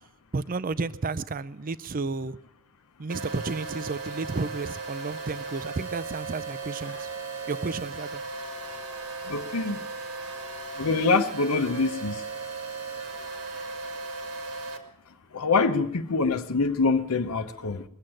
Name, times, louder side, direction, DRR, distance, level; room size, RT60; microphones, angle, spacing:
voice 1, 0.3-2.4 3.0-7.1 7.5-8.2, right 3 dB, 40° right, 0.5 m, -32 dB
sound 1, 3.1-14.8, right 4 dB, 70° right, 2.1 m, -36 dB
voice 2, 9.3-9.8 10.8-12.2 15.3-17.8, left 4 dB, 75° left, 0.8 m, -25 dB
21.0 x 7.9 x 8.8 m
head